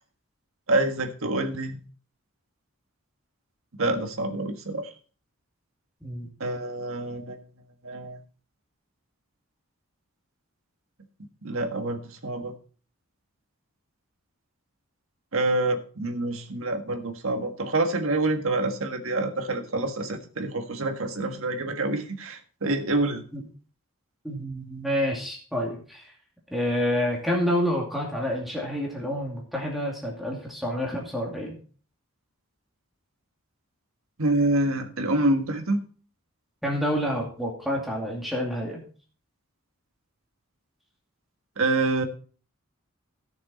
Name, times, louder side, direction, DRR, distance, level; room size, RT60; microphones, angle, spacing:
voice 1, 0.7-1.8 3.8-4.9 6.4-7.4 7.8-8.2 11.4-12.5 15.3-23.2 34.2-35.8 41.6-42.0, right 2 dB, 75° right, 5 dB, 1.6 m, -27 dB
voice 2, 24.2-26.1 26.5-31.6 36.6-38.8, equal, ahead, -2 dB, 2.4 m, -28 dB
15.5 x 6.6 x 4.3 m, 0.41 s
head